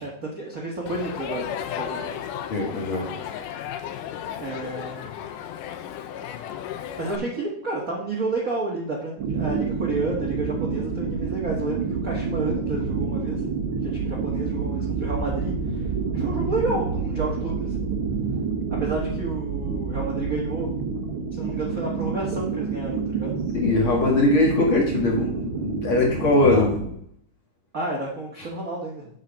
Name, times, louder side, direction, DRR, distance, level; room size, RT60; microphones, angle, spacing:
voice 1, 0.0-2.2 4.4-5.1 7.0-13.4 13.8-17.8 18.8-20.7 21.3-23.4 26.5-26.7 27.7-29.1, right 2 dB, 40° right, -2 dB, 1.2 m, -30 dB
Crowd, 0.9-7.2, left 10 dB, 80° left, 2.2 m, -34 dB
voice 2, 2.5-3.1 23.6-26.7, left 2 dB, 45° left, -2 dB, 2.4 m, -21 dB
sound 1, 9.2-26.9, right 5 dB, 65° right, 1.3 m, -28 dB
8.1 x 6.4 x 5.2 m, 0.69 s
omnidirectional pair, 3.8 m